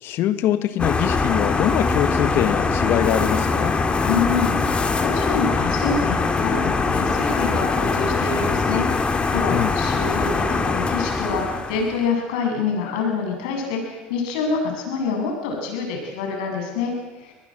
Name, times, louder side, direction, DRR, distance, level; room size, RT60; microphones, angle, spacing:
voice 1, 0.0-3.8 9.5-9.7, left 11 dB, 60° left, 12 dB, 1.7 m, -23 dB
sound 1, 0.8-12.1, left 4 dB, 25° left, 3.0 m, -22 dB
voice 2, 4.0-8.8 9.1-17.3, left 5 dB, 80° left, 2 dB, 7.8 m, -26 dB
25.5 x 19.5 x 7.8 m, 1.2 s
supercardioid pair, 90°, 4 cm